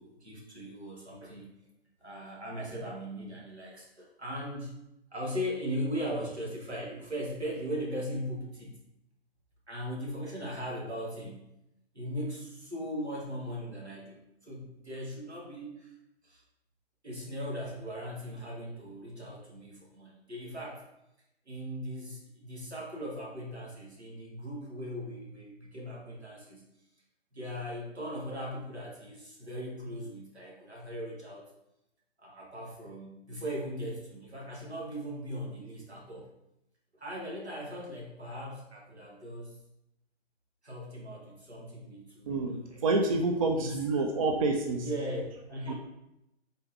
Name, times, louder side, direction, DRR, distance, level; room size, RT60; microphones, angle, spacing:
voice 1, 0.0-1.5 2.0-4.7 5.1-8.8 9.7-11.5 11.9-15.9 16.2-16.4 17.0-20.8 21.5-26.6 27.3-31.5 32.2-36.3 37.0-39.6 40.6-42.8 43.5-43.8 44.7-45.2 45.5-45.7, equal, 85° right, -3 dB, 1.5 m, -39 dB
voice 2, 42.8-44.9 45.7-45.8, right 3 dB, 35° right, 2 dB, 0.4 m, -27 dB
3.8 x 3.7 x 2.7 m, 0.86 s
figure-of-eight pair, 125°, 32 cm